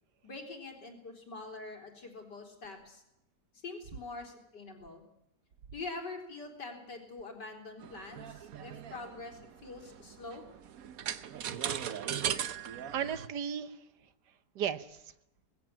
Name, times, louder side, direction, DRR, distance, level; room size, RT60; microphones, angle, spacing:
voice 1, 0.2-3.0 3.6-5.0 5.7-10.4, left 3 dB, 85° left, 3 dB, 4.7 m, -44 dB
sound 1, 7.8-13.3, right 9 dB, 60° right, 1.3 m, -38 dB
voice 2, 11.8-12.3 12.9-13.9 14.5-15.1, right 8 dB, 80° right, 14 dB, 1.6 m, -36 dB
20.0 x 16.0 x 8.8 m, 0.84 s
omnidirectional pair, 1.8 m